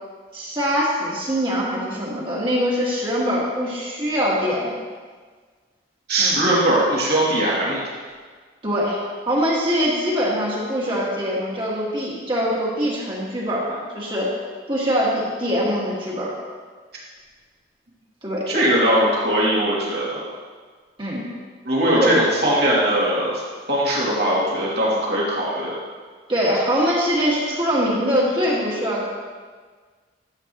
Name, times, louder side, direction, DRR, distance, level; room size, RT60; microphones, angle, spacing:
voice 1, 0.3-4.8 6.2-6.4 8.6-9.0 9.3-14.3 14.7-16.3 18.2-18.5 21.0-21.3 22.0-22.2 26.3-29.1, equal, 25° right, -5 dB, 2.1 m, -23 dB
voice 2, 6.1-7.8 18.5-20.2 21.6-23.3 23.7-25.7, right 1 dB, 60° right, -6 dB, 2.7 m, -20 dB
12.5 x 8.3 x 3.1 m, 1.5 s
head